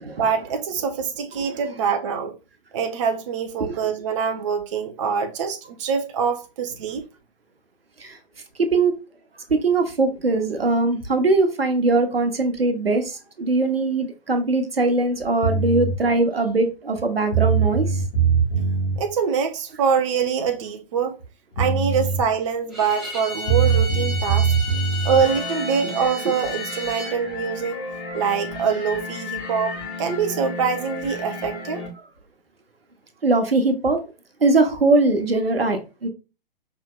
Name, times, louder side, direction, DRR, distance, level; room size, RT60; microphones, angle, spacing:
voice 1, 0.2-2.3 2.7-7.1 19.0-21.1 21.6-24.5 25.0-27.8 28.1-31.8, right 6 dB, 35° right, 0.4 m, -24 dB
voice 2, 8.6-8.9 9.5-18.0 25.8-25.9 27.1-27.2 33.2-34.0 34.4-36.1, right 3 dB, 80° right, 0.9 m, -21 dB
sound 1, 15.4-16.0 17.0-17.1 17.3-19.0 21.2-21.3 21.6-22.2 23.5-25.2, right 5 dB, 55° left, 1.1 m, -21 dB
Bowed string instrument, 22.7-27.2, left 2 dB, ahead, 0.9 m, -33 dB
sound 2, 25.2-31.9, left 3 dB, 25° left, 1.3 m, -34 dB
5.0 x 2.9 x 2.3 m
figure-of-eight pair, 120°, 29 cm